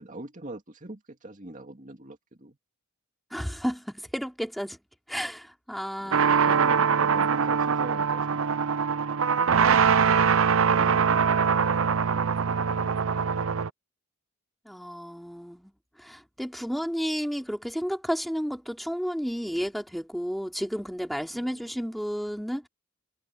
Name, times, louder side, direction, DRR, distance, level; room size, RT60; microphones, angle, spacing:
voice 1, 0.0-2.6 6.0-9.1 21.4-21.7, right 1 dB, 40° right, 2.4 m, -43 dB
voice 2, 3.3-4.8 5.1-6.9 10.8-11.3 14.6-15.7 16.0-22.7, equal, ahead, 3.0 m, -32 dB
sound 1, 6.1-13.7, right 6 dB, 75° right, 0.6 m, -23 dB
head